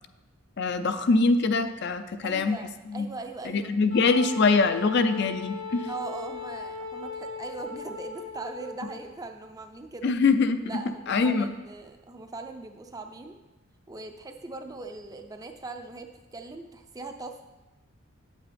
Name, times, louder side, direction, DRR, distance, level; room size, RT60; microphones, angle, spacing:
voice 1, 0.6-2.6 2.9-3.1 3.5-5.9 10.0-10.6 11.1-11.5, left 4 dB, 50° left, 9 dB, 0.5 m, -23 dB
voice 2, 2.2-3.7 5.9-10.1 10.7-13.4 13.9-17.4, right 3 dB, 15° right, 5 dB, 0.4 m, -40 dB
Wind instrument woodwind instrument, 3.9-9.0, left 3 dB, 85° left, 3.3 m, -38 dB
8.6 x 8.3 x 3.4 m, 1.1 s
head